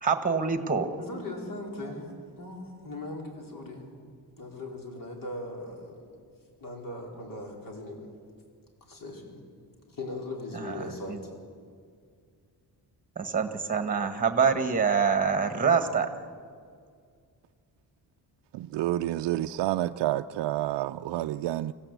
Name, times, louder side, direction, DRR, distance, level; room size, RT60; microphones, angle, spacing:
voice 1, 0.0-1.0 10.5-10.8 11.1-11.2 13.2-16.1, right 6 dB, 20° right, 9 dB, 1.5 m, -25 dB
voice 2, 1.0-2.1 2.4-3.9 4.4-6.1 6.6-8.1 8.8-9.4 9.9-11.4, left 2 dB, 50° left, 1 dB, 4.5 m, -39 dB
voice 3, 18.5-21.7, right 14 dB, 85° right, 7 dB, 0.5 m, -29 dB
25.0 x 16.0 x 8.1 m, 2.2 s
cardioid pair, 150°, 41 cm